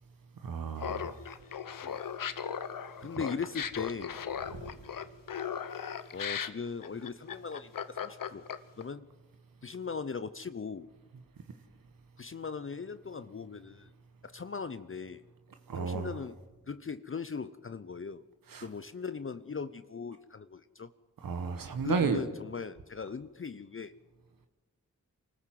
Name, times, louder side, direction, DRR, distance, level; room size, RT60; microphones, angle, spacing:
voice 1, 0.4-1.2 4.5-4.7 15.7-16.2 18.5-18.7 21.2-22.2, right 5 dB, 85° right, 7 dB, 1.2 m, -32 dB
Laughter, 0.8-8.8, left 8 dB, 75° left, 0.9 m, -37 dB
voice 2, 3.0-4.2 6.1-8.4 8.8-9.1 9.6-10.9 12.2-13.9 14.2-15.2 15.7-16.4 16.7-18.2 18.6-20.9 21.8-23.9, left 5 dB, 40° left, 13 dB, 0.7 m, -39 dB
24.5 x 14.0 x 7.7 m, 1.2 s
cardioid pair, 45°, 33 cm